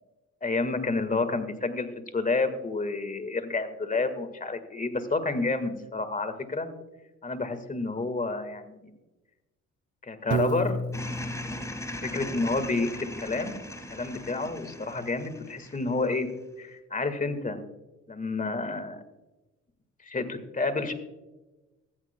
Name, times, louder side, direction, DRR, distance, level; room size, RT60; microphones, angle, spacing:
voice 1, 0.4-6.7 7.2-8.9 10.0-10.8 12.0-13.6 13.9-16.3 16.6-17.6 18.1-19.0 20.0-20.9, left 3 dB, 25° left, 10 dB, 1.7 m, -29 dB
Piano, 10.3-12.5, right 3 dB, 40° right, 1.1 m, -32 dB
sound 1, 10.9-16.3, left 1 dB, 10° left, 1.7 m, -39 dB
15.5 x 14.0 x 2.2 m, 1.1 s
cardioid pair, 90°, 30 cm